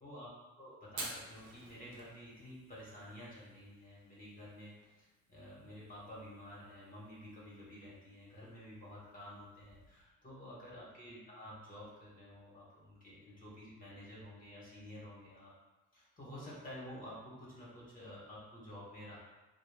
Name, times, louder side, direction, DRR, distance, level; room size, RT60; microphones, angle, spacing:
voice 1, 0.0-0.3 0.6-15.5 15.9-19.2, left 1 dB, 30° left, -7 dB, 1.0 m, -51 dB
Fire, 0.8-10.0, right 2 dB, 65° right, 0.7 m, -53 dB
2.2 x 2.0 x 3.2 m, 1.1 s
cardioid pair, 90°, 30 cm